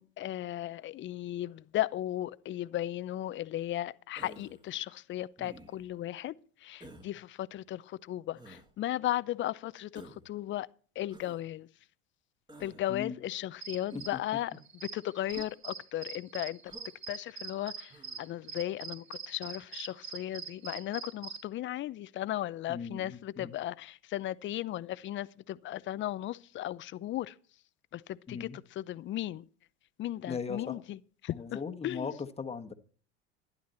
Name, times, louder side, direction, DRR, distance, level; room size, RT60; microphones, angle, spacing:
voice 1, 0.0-6.3 6.6-10.7 11.0-11.7 12.6-14.6 14.9-16.7 17.1-27.4 27.9-29.5 30.0-32.1, left 13 dB, 35° left, 0.6 m, -36 dB
Human voice, 4.2-4.6 5.4-5.9 6.8-7.1 8.3-8.7 9.9-10.3 11.1-11.4 12.5-12.8 13.9-14.3 15.3-15.5 16.7-17.0 17.9-18.2, right 1 dB, 10° right, 1.8 m, -50 dB
sound 1, 13.6-21.4, right 6 dB, 35° right, 2.3 m, -43 dB
voice 2, 22.7-23.5 28.3-28.6 30.3-30.8 31.3-32.7, left 5 dB, 15° left, 1.4 m, -38 dB
12.5 x 11.0 x 4.3 m
hypercardioid pair, 90°, 36 cm